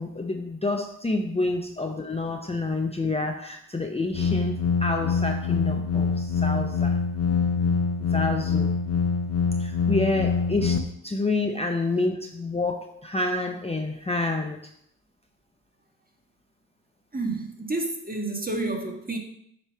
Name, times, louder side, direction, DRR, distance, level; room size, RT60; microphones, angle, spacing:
voice 1, 0.0-7.0 8.1-8.7 9.6-14.7, left 2 dB, 15° left, 0.6 m, -28 dB
sound 1, 4.1-10.8, left 5 dB, 40° left, 0.9 m, -25 dB
voice 2, 17.1-19.2, right 2 dB, 25° right, 1.5 m, -30 dB
8.0 x 3.0 x 5.6 m
cardioid pair, 55°, 37 cm